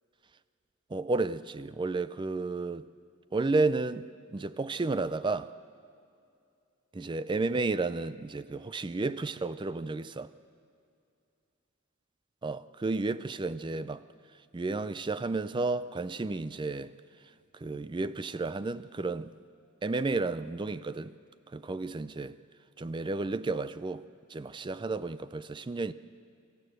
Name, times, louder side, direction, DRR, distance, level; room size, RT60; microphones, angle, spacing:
voice 1, 0.9-2.9 3.3-5.5 6.9-10.3 12.4-14.0 14.5-16.9 17.6-19.3 19.8-21.1 21.5-22.4 22.8-24.0 24.3-25.9, right 3 dB, 20° right, 0.4 m, -32 dB
24.0 x 15.0 x 7.8 m
head